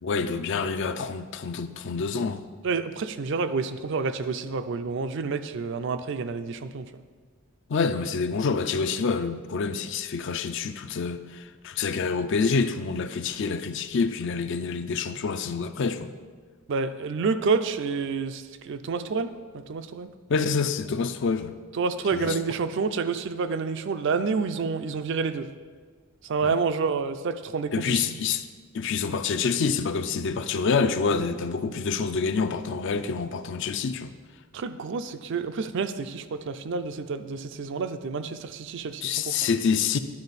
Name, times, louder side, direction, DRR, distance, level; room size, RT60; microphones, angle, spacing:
voice 1, 0.0-2.4 7.7-16.1 20.3-21.5 22.1-22.3 26.4-26.6 27.7-28.5 28.7-34.1 39.0-40.0, left 5 dB, 60° left, 11 dB, 0.4 m, -27 dB
voice 2, 2.6-7.0 16.7-20.1 21.7-25.5 26.2-28.2 34.5-39.5, right 4 dB, 60° right, 10 dB, 0.4 m, -29 dB
10.5 x 4.7 x 4.1 m, 1.5 s
head